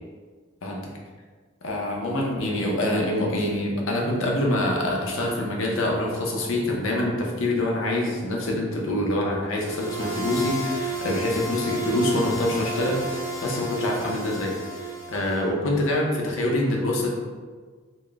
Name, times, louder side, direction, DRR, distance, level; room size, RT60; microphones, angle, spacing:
voice 1, 1.6-14.5 14.8-17.1, left 1 dB, 85° left, -1 dB, 0.7 m, -25 dB
sound 1, 9.6-15.4, right 2 dB, 10° right, 0.9 m, -32 dB
4.1 x 2.1 x 3.4 m, 1.4 s
head